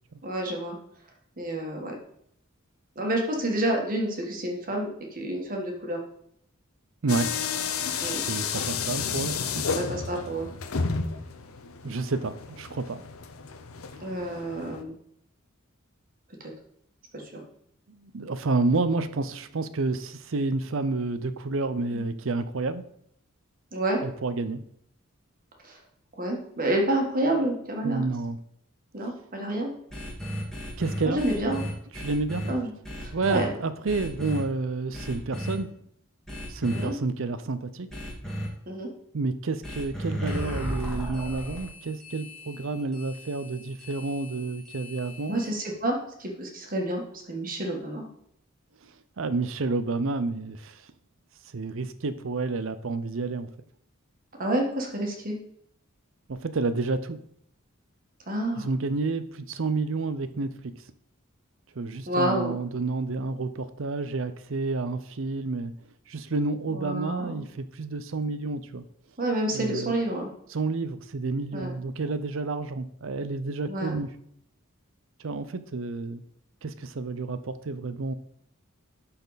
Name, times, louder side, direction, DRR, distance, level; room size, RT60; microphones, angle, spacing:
voice 1, 0.2-0.8 1.4-1.9 2.9-6.0 8.0-8.2 9.8-10.5 14.0-14.9 17.1-17.4 23.7-24.0 25.6-25.8 26.2-28.0 28.9-29.7 31.0-31.6 32.4-32.7 33.0-33.5 36.7-36.9 38.7-38.9 45.3-48.1 54.4-55.4 58.3-58.7 62.1-62.5 66.7-67.4 69.2-70.3 71.5-71.7 73.7-73.9, right 1 dB, 40° right, 1 dB, 1.6 m, -29 dB
voice 2, 7.0-7.3 8.2-9.7 11.8-13.0 17.9-22.8 24.0-24.6 27.8-28.4 30.8-31.2 31.9-32.4 33.1-35.7 36.5-37.9 39.1-45.4 48.8-48.9 49.2-50.8 51.5-53.5 56.3-57.2 58.5-60.5 61.8-65.7 66.1-68.8 69.5-69.9 70.5-74.1 75.2-76.2 76.6-78.1, right 3 dB, 65° right, 12 dB, 0.6 m, -30 dB
sound 1, 7.1-14.8, left 5 dB, 85° left, 0.8 m, -32 dB
sound 2, 29.9-32.5 32.8-33.4 33.9-34.4 34.9-35.5 36.3-36.8 37.9-38.5 39.6-45.4, equal, ahead, 2.0 m, -35 dB
12.0 x 4.3 x 4.1 m, 0.69 s
head